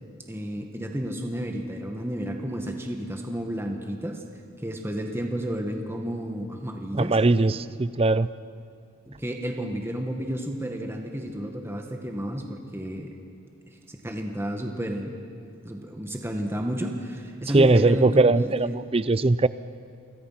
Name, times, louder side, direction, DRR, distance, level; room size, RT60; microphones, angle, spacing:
voice 1, 0.3-4.2 4.6-7.2 9.1-13.1 13.7-15.2 15.6-18.8, equal, 10° right, 3 dB, 1.7 m, -31 dB
voice 2, 6.9-8.3 17.5-19.5, right 3 dB, 30° right, 16 dB, 0.5 m, -20 dB
29.5 x 24.5 x 5.9 m, 2.3 s
head